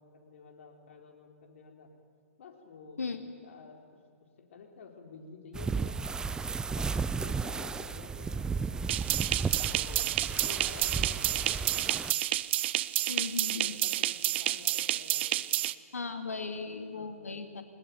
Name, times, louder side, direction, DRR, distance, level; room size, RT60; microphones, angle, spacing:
voice 1, 0.0-1.9 2.4-3.0 3.4-4.0 4.4-6.0 6.7-12.0 13.5-15.6 16.4-16.6 16.9-17.2, left 4 dB, 60° left, 3 dB, 4.1 m, -51 dB
sound 1, 5.5-12.1, right 5 dB, 10° right, 0.5 m, -34 dB
sound 2, 8.9-15.7, right 14 dB, 50° right, 0.7 m, -30 dB
voice 2, 13.1-13.8 15.9-17.6, left 4 dB, 80° left, 7 dB, 2.5 m, -37 dB
21.5 x 20.0 x 9.6 m, 2.1 s
figure-of-eight pair, 120°, 8 cm